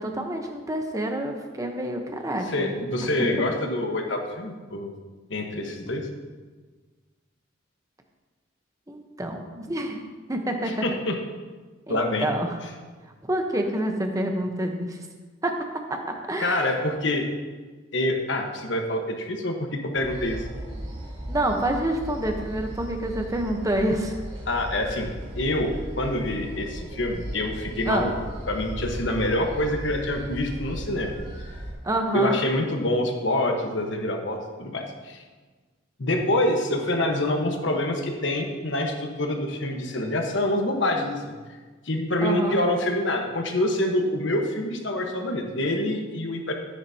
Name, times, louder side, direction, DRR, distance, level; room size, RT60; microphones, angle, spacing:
voice 1, 0.0-2.7 3.0-3.1 8.9-10.0 10.3-11.0 11.9-12.6 13.2-15.0 15.4-15.5 15.9-16.7 21.3-24.2 27.9-28.1 31.8-32.4 42.2-42.6, right 1 dB, 15° right, 3 dB, 1.0 m, -27 dB
voice 2, 2.5-4.9 5.3-6.1 10.7-11.2 11.9-12.3 16.4-17.2 17.9-20.4 24.5-28.1 28.5-31.1 32.1-35.2 36.0-41.3 41.8-46.5, left 1 dB, 65° left, 3 dB, 1.3 m, -26 dB
sound 1, 19.9-31.7, equal, 30° right, 3.0 m, -37 dB
13.0 x 9.9 x 2.9 m, 1.4 s
head